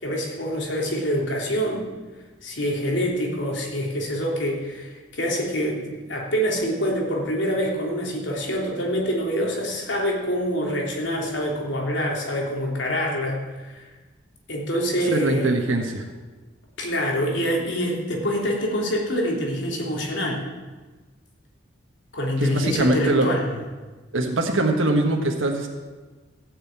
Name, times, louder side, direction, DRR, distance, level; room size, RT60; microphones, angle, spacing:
voice 1, 0.0-1.9 2.4-13.9 14.5-15.5 16.8-20.5 22.1-23.6, equal, 65° left, -1 dB, 3.3 m, -26 dB
voice 2, 15.1-16.0 22.4-23.3 24.1-25.7, right 2 dB, 90° right, 2 dB, 1.5 m, -22 dB
15.5 x 6.8 x 8.7 m, 1.3 s
head